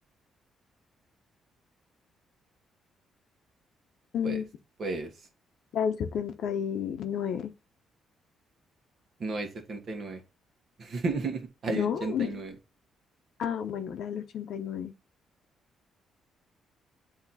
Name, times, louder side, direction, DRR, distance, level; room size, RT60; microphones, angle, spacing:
voice 1, 4.1-4.4 5.7-7.5 11.7-12.4 13.4-14.9, left 8 dB, 70° left, 0.8 m, -31 dB
voice 2, 4.8-5.1 9.2-10.2 10.8-12.5, right 3 dB, 55° right, 1.5 m, -33 dB
8.3 x 2.9 x 4.1 m
cardioid pair, 90°, 0 cm